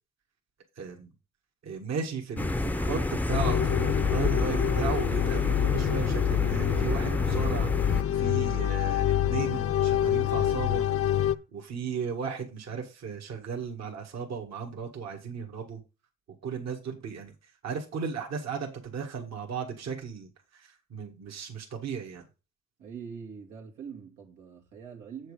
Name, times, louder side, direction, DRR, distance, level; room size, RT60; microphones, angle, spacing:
voice 1, 0.8-1.1 1.6-7.7 8.1-11.1 11.5-15.8 16.4-17.3 17.6-22.2, right 6 dB, 60° right, 1.8 m, -35 dB
sound 1, 2.4-8.0, left 1 dB, 5° left, 0.6 m, -29 dB
sound 2, 3.3-11.3, left 11 dB, 50° left, 0.6 m, -26 dB
voice 2, 22.8-25.3, right 6 dB, 90° right, 2.4 m, -44 dB
7.6 x 6.5 x 4.9 m
cardioid pair, 90°, 30 cm